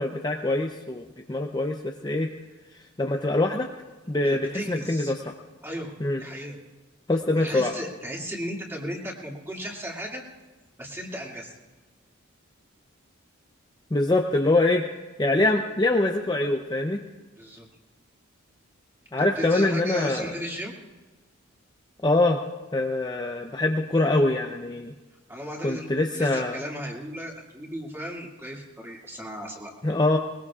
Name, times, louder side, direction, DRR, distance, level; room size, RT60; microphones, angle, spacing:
voice 1, 0.0-2.3 3.0-3.7 4.1-5.4 6.0-6.2 7.1-7.7 13.9-14.8 15.2-17.0 19.1-20.2 22.0-22.4 22.7-24.9 25.6-26.6 29.8-30.2, left 2 dB, 20° left, 2 dB, 0.6 m, -24 dB
voice 2, 4.2-5.1 5.6-5.9 6.2-6.6 7.3-10.2 10.8-11.5 17.4-17.7 19.2-20.7 25.3-25.9 26.1-29.7, equal, 10° right, -2 dB, 2.3 m, -35 dB
21.0 x 20.5 x 2.4 m, 1.2 s
head